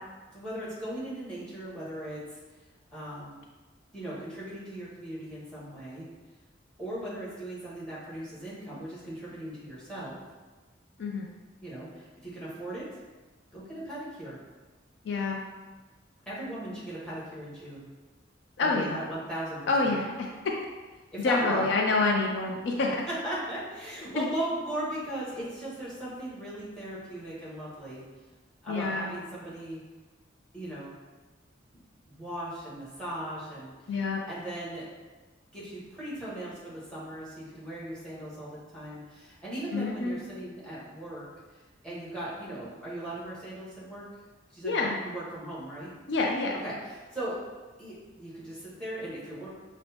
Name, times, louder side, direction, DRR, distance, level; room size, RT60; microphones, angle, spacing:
voice 1, 0.3-2.4 2.9-3.4 3.9-6.1 6.8-10.2 11.6-12.9 13.5-14.4 16.3-17.9 18.6-19.9 21.1-21.7 23.1-28.0 28.6-29.8 30.5-30.9 32.1-34.0 34.3-34.8 35.5-41.6 41.8-44.0 44.5-45.9 46.6-47.4 47.8-49.5, right 1 dB, 5° left, -8 dB, 1.2 m, -38 dB
voice 2, 15.0-15.4 18.6-19.0 19.7-20.3 21.2-23.0 24.1-24.3 28.7-29.1 33.9-34.2 39.7-40.2 44.6-45.0 46.1-46.6, left 3 dB, 65° left, 0 dB, 0.4 m, -27 dB
6.0 x 2.0 x 2.8 m, 1.3 s
head